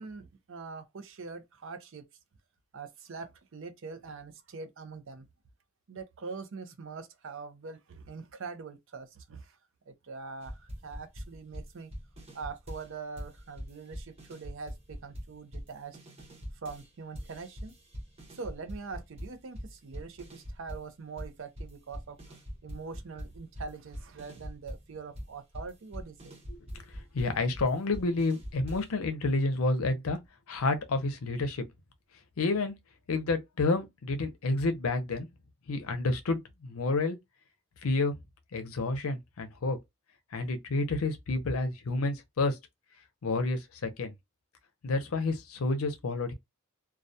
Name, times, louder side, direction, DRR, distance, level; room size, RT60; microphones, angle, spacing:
voice 1, 0.0-2.1 2.7-5.3 5.9-9.6 9.9-11.9 12.3-16.0 16.6-17.7 18.3-22.2 22.6-26.3, right 4 dB, 60° right, 0.5 m, -43 dB
sound 1, 10.4-12.9 13.2-16.9 17.1-20.9 21.2-29.0, equal, 30° right, 0.8 m, -43 dB
voice 2, 26.5-30.2 30.5-31.6 32.4-32.7 33.1-35.3 35.7-37.2 37.8-38.1 38.5-39.8 40.3-42.6 43.2-44.1 44.8-46.3, left 3 dB, 80° left, 0.6 m, -29 dB
2.3 x 2.1 x 2.6 m
head